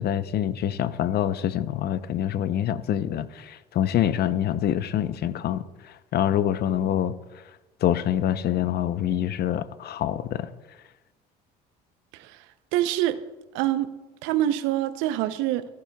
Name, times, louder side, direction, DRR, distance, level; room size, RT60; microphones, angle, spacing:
voice 1, 0.0-7.4 7.8-10.5, left 10 dB, 55° left, 0.6 m, -26 dB
voice 2, 12.7-13.2 13.5-13.9 14.2-15.6, right 13 dB, 80° right, 0.6 m, -25 dB
13.5 x 12.0 x 2.3 m
supercardioid pair, 75°, 20 cm